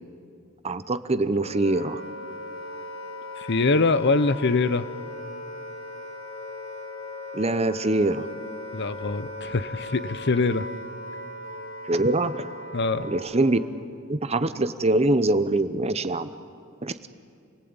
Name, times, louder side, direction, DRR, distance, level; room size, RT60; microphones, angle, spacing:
voice 1, 0.6-2.0 7.3-8.2 11.9-12.5 13.0-13.6 14.1-16.3 16.8-17.1, right 2 dB, 30° right, 12 dB, 0.8 m, -24 dB
Wind instrument woodwind instrument, 1.1-13.8, left 1 dB, 80° left, 2.7 m, -38 dB
voice 2, 3.4-4.9 8.7-10.7 12.7-13.1, left 3 dB, 55° left, 14 dB, 0.8 m, -23 dB
28.5 x 18.5 x 8.9 m, 2.3 s
head